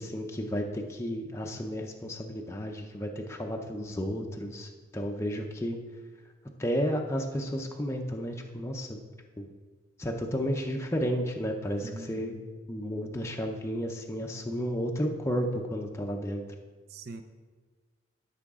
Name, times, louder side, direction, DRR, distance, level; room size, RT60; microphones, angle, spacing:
voice 1, 0.0-5.8 6.6-9.0 9.4-9.5 10.0-12.4 12.7-16.4, equal, 15° left, 2 dB, 0.5 m, -32 dB
voice 2, 11.8-12.4 16.9-17.2, right 3 dB, 50° right, 7 dB, 0.5 m, -43 dB
12.5 x 5.8 x 3.6 m, 1.4 s
head